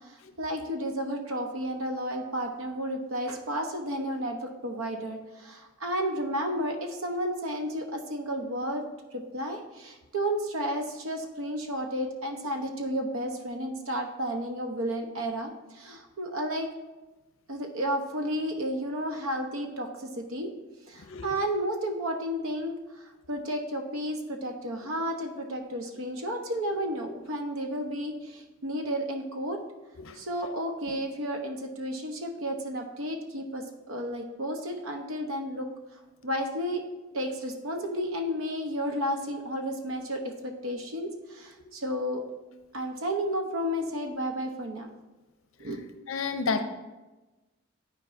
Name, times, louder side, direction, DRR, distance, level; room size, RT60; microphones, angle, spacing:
voice 1, 0.0-8.9 9.1-16.7 17.5-20.5 20.9-29.6 30.1-35.7 36.2-36.9 37.1-42.2 42.7-45.0 45.6-45.8, equal, 80° right, 4 dB, 0.9 m, -32 dB
voice 2, 21.1-21.4 30.0-30.2 46.1-46.6, left 4 dB, 75° left, 8 dB, 0.6 m, -30 dB
11.5 x 4.5 x 2.6 m, 1.1 s
head